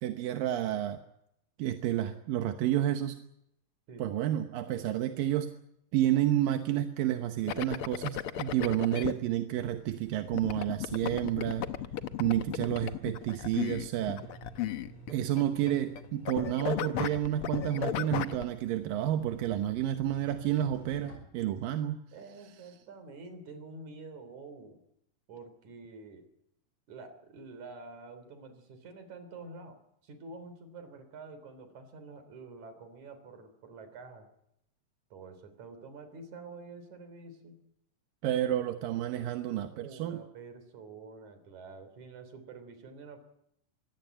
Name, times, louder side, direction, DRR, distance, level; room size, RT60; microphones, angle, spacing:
voice 1, 0.0-1.0 1.6-3.2 4.0-5.5 5.9-11.7 12.2-14.2 15.1-22.0 38.2-40.2, right 12 dB, 85° right, 7 dB, 2.8 m, -30 dB
sound 1, 7.5-9.1 10.3-16.0 16.3-18.4, left 10 dB, 85° left, 1.2 m, -34 dB
sound 2, 9.5-21.2, right 2 dB, 40° left, 6.4 m, -52 dB
voice 2, 22.1-24.8 25.3-26.3 26.9-34.3 35.1-37.6 39.8-43.2, right 3 dB, 60° right, 9 dB, 4.6 m, -48 dB
24.0 x 17.0 x 9.0 m, 0.79 s
omnidirectional pair, 3.9 m